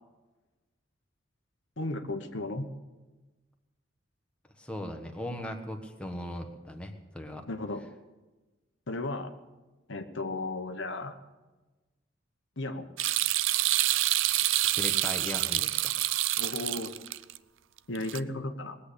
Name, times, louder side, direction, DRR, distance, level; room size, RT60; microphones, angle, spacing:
voice 1, 1.8-2.7 7.5-7.8 8.9-9.3 9.9-11.2 12.6-12.9 16.4-16.9 17.9-18.8, left 2 dB, 65° left, 7 dB, 1.1 m, -34 dB
voice 2, 4.6-7.4 14.6-15.9, left 1 dB, 5° left, 3 dB, 1.2 m, -38 dB
sound 1, 13.0-17.4 17.9-18.2, right 15 dB, 75° right, 0.5 m, -27 dB
20.0 x 8.3 x 8.4 m, 1.2 s
head